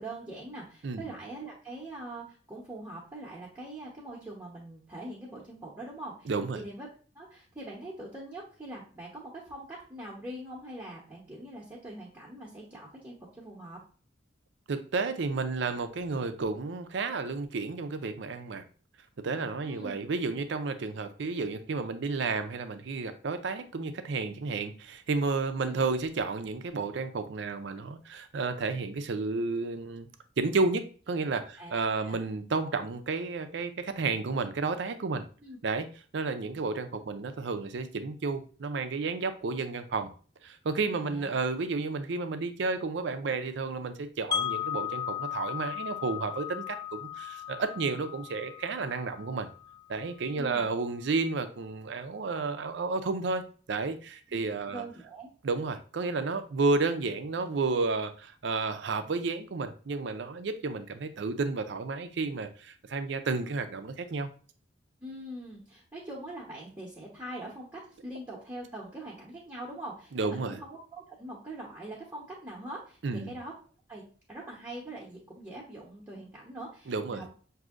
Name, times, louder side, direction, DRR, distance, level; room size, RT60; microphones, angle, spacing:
voice 1, 0.0-6.9 7.1-13.8 19.6-20.0 25.5-25.8 31.6-32.2 35.4-35.6 41.0-41.3 50.3-50.6 54.3-54.4 54.7-55.3 65.0-73.5 73.9-74.0 74.3-77.3, right 1 dB, 15° right, -5 dB, 0.9 m, -43 dB
voice 2, 6.3-6.6 14.7-18.6 19.2-30.1 30.4-35.2 35.6-35.9 36.1-40.1 40.4-49.5 49.9-54.8 55.4-64.3 70.1-70.6 73.0-73.4 76.9-77.3, right 4 dB, 70° right, 9 dB, 0.5 m, -31 dB
Wind chime, 44.3-50.3, left 9 dB, 20° left, 0.4 m, -36 dB
6.1 x 2.7 x 2.4 m, 0.40 s
head